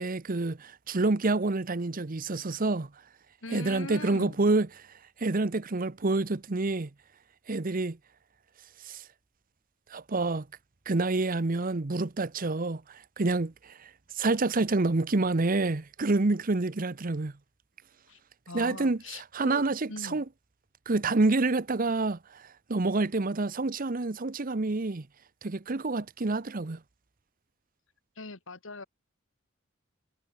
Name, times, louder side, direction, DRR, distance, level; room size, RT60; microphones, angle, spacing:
voice 1, 0.0-2.9 3.5-4.9 5.2-6.9 7.5-8.0 8.8-9.0 9.9-10.5 10.9-17.3 18.5-20.2 20.9-25.1 25.4-26.8, right 3 dB, 45° right, 0.9 m, -28 dB
voice 2, 3.4-4.4 18.1-18.2 18.5-19.6 19.9-20.2 28.2-28.8, left 3 dB, 70° left, 2.4 m, -41 dB
head